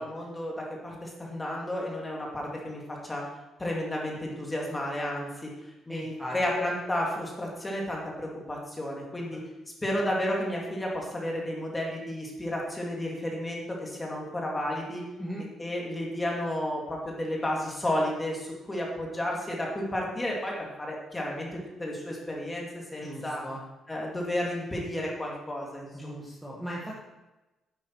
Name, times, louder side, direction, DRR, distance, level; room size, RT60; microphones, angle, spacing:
voice 1, 0.0-3.2 3.6-5.5 5.9-9.4 9.8-15.0 15.6-21.5 21.8-23.4 23.9-26.1, left 1 dB, 15° left, -2 dB, 2.3 m, -32 dB
voice 2, 5.9-6.4 9.3-9.4 15.2-15.5 23.0-23.6 25.9-27.0, equal, 5° right, -5 dB, 1.6 m, -38 dB
9.8 x 8.4 x 4.6 m, 1.0 s
cardioid pair, 155°, 0 cm